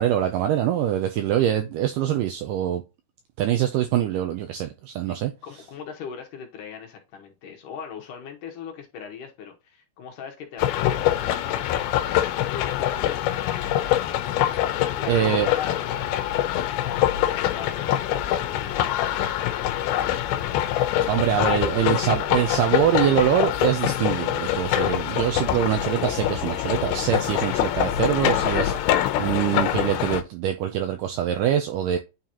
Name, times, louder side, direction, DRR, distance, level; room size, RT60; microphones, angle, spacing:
voice 1, 0.0-2.8 3.4-5.3 15.1-15.5 21.1-32.0, right 11 dB, 80° right, 1.9 m, -24 dB
voice 2, 5.1-11.8 12.4-13.2 14.6-19.8, left 7 dB, 70° left, 2.3 m, -40 dB
sound 1, 10.6-30.2, left 12 dB, 85° left, 2.6 m, -24 dB
9.3 x 3.9 x 2.9 m
omnidirectional pair, 4.4 m